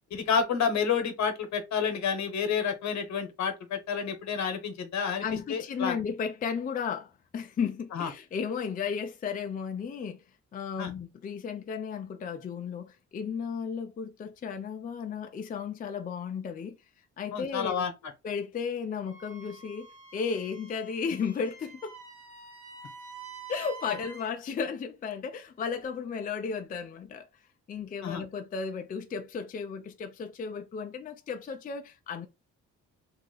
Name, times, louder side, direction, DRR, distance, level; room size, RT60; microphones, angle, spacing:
voice 1, 0.1-5.2 5.5-5.9 7.9-8.1 10.8-10.9 17.3-17.9 28.0-28.2, left 6 dB, 65° left, 0.9 m, -29 dB
voice 2, 5.2-10.2 10.5-16.8 17.2-17.8 18.2-19.9 20.1-22.0 23.5-27.4 27.7-32.3, left 6 dB, 30° left, 0.4 m, -34 dB
Wind instrument woodwind instrument, 19.0-24.3, right 4 dB, 70° right, 1.6 m, -47 dB
2.8 x 2.3 x 3.8 m
cardioid pair, 90°, 30 cm